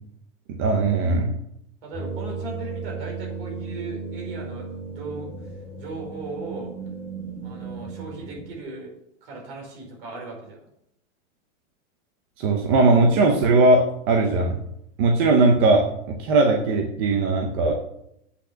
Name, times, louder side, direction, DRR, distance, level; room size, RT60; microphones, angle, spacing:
voice 1, 0.5-1.3 12.4-14.6 15.0-17.7, right 3 dB, 20° right, 3 dB, 0.5 m, -19 dB
voice 2, 1.8-5.3 5.8-6.7 7.4-8.9 9.2-10.7, right 3 dB, 45° right, 0 dB, 4.8 m, -37 dB
sound 1, 1.9-8.6, right 4 dB, 5° right, 2.7 m, -35 dB
8.3 x 6.4 x 7.4 m, 0.77 s
supercardioid pair, 175°, 37 cm